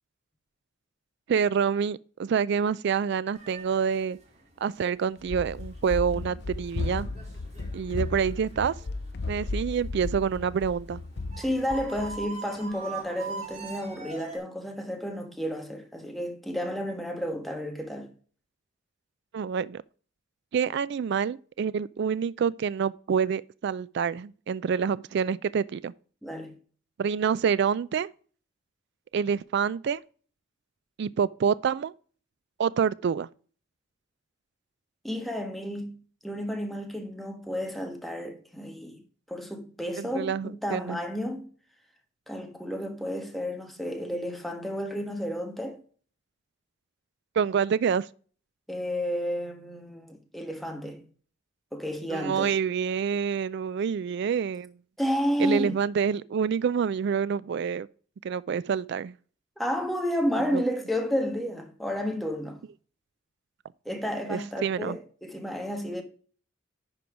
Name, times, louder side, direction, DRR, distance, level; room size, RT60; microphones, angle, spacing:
voice 1, 1.3-4.2 4.6-7.1 7.7-8.8 9.3-11.0 19.3-19.8 20.5-25.9 27.0-28.1 29.1-30.0 31.0-31.9 32.6-33.3 40.0-41.0 47.4-48.1 52.1-54.7 55.4-57.9 58.2-59.1 60.5-60.6 64.3-65.0, right 7 dB, 60° right, 0.3 m, -27 dB
sound 1, 3.3-14.4, right 4 dB, 35° right, 2.8 m, -44 dB
Run, 5.2-12.3, left 3 dB, 55° left, 0.6 m, -35 dB
voice 2, 11.4-18.1 26.2-26.5 35.0-39.0 39.3-41.5 42.3-45.8 48.7-51.0 51.7-52.5 55.0-55.8 59.6-62.6 63.8-66.0, equal, ahead, 1.4 m, -31 dB
10.5 x 4.5 x 4.9 m
head